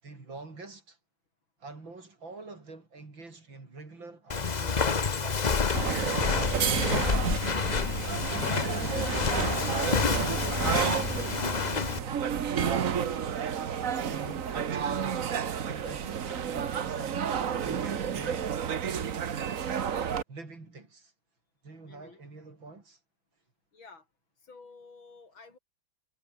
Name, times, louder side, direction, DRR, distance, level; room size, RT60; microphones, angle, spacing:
voice 1, 0.0-1.0 1.6-7.1 8.2-13.3 13.6-17.2 17.6-18.6 20.3-21.1 21.6-23.0, right 3 dB, 65° right, 5.8 m, -46 dB
Walk footsteps, 4.3-12.0, left 5 dB, 40° left, 0.6 m, -28 dB
sound 1, 5.7-20.2, right 8 dB, 45° right, 1.3 m, -31 dB
voice 2, 21.9-22.2 23.7-24.1 24.4-25.6, left 4 dB, 65° left, 4.7 m, -52 dB
omnidirectional pair, 2.3 m